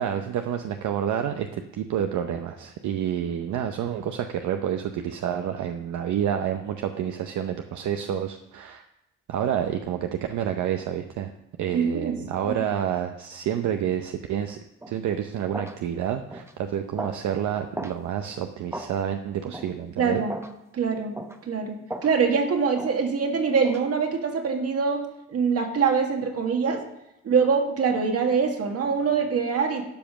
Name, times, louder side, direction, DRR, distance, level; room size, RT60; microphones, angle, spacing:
voice 1, 0.0-8.8 9.3-11.3 11.6-14.6 14.9-20.2, right 9 dB, 75° right, 6 dB, 0.7 m, -29 dB
voice 2, 11.7-12.6 20.0-20.3 20.7-21.1 21.4-21.8 22.0-26.8 27.2-29.8, right 5 dB, 55° right, 4 dB, 1.8 m, -24 dB
sound 1, 14.8-15.0 15.5-15.8 16.3-16.5 17.0-17.2 17.7-18.0 18.7-18.9 19.5-19.7 20.3-20.5 21.1-21.4 21.9-22.1 22.7-23.0 23.6-23.8, right 1 dB, 10° right, 0.8 m, -36 dB
12.0 x 5.2 x 6.0 m, 0.88 s
cardioid pair, 90°, 30 cm